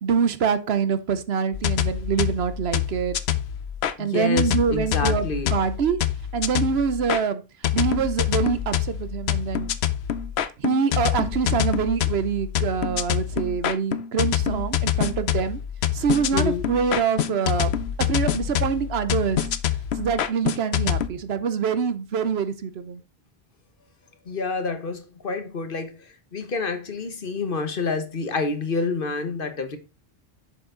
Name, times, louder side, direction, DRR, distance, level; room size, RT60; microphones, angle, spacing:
voice 1, 0.0-3.2 4.0-6.0 6.3-7.4 7.7-9.7 10.6-15.6 15.9-19.4 20.0-23.0, right 6 dB, 75° right, 1.1 m, -25 dB
sound 1, 1.5-3.9 4.4-7.2 7.6-21.1, left 10 dB, 85° left, 0.9 m, -26 dB
voice 2, 4.0-5.5 16.3-16.6 24.3-25.9 26.3-29.8, left 4 dB, 55° left, 1.4 m, -28 dB
7.1 x 6.7 x 3.8 m
omnidirectional pair, 1.1 m